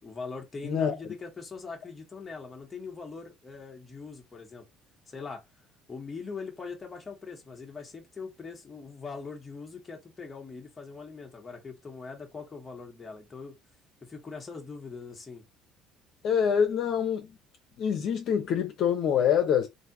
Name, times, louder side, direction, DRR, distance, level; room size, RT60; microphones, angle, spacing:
voice 1, 0.0-4.6 5.1-5.4 5.9-13.6 14.1-15.4, left 4 dB, 25° left, 1.3 m, -41 dB
voice 2, 0.6-1.0 16.2-17.4 17.8-19.7, left 8 dB, 60° left, 0.9 m, -25 dB
3.3 x 2.8 x 2.7 m
cardioid pair, 105°, 0 cm